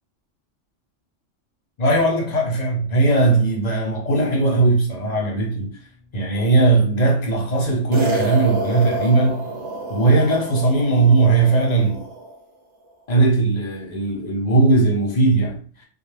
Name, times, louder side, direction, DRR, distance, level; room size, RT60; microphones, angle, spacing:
voice 1, 1.8-5.8 6.1-9.4 9.9-12.0 13.1-15.9, right 3 dB, 40° left, 0.7 m, -18 dB
sound 1, 4.1-7.1, right 1 dB, 45° right, 0.5 m, -40 dB
sound 2, 7.9-12.4, right 1 dB, 75° right, 0.9 m, -28 dB
2.2 x 2.0 x 3.2 m
omnidirectional pair, 1.2 m